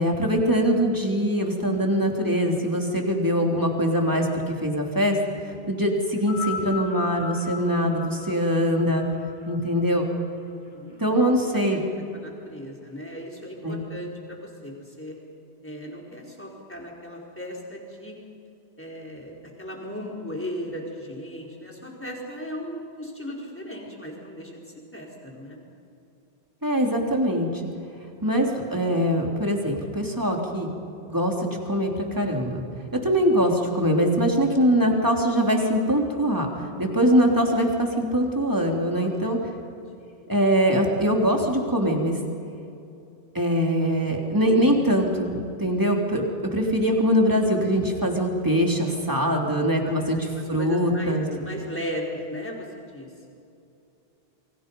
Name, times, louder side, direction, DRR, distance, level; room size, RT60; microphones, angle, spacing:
voice 1, 0.0-5.2 5.7-9.0 9.5-10.1 11.0-11.8 13.6-13.8 26.6-27.6 28.2-30.7 31.1-32.6 33.0-39.4 40.3-42.2 43.3-51.2, equal, 20° right, 1 dB, 3.3 m, -23 dB
sound 1, 6.2-10.7 11.6-11.7, left 7 dB, 50° right, 4.7 m, -36 dB
voice 2, 10.5-11.1 11.5-11.8 12.1-15.2 15.6-18.1 18.8-24.5 24.9-25.6 32.9-33.0 36.8-37.0 38.9-39.3 49.8-53.1, equal, 10° left, -2 dB, 4.6 m, -37 dB
29.0 x 24.0 x 5.4 m, 2.6 s
omnidirectional pair, 1.1 m